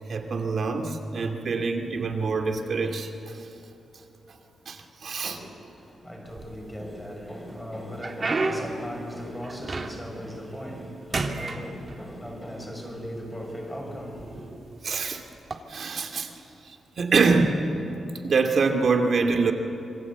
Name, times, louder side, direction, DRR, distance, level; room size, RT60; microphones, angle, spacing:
voice 1, 0.1-3.1 4.7-5.4 14.8-15.2 15.7-16.3 17.0-17.7 18.2-19.5, right 4 dB, 55° right, 4 dB, 2.4 m, -24 dB
voice 2, 5.1-14.5, equal, 5° left, 1 dB, 5.1 m, -38 dB
sound 1, 6.3-7.0 7.5-10.2 10.6-10.9 11.1-12.4 13.2-13.3 14.0-14.2 15.4-15.6, right 3 dB, 35° right, 1.9 m, -31 dB
27.0 x 23.5 x 8.1 m, 2.9 s
wide cardioid pair, 135°, 0 cm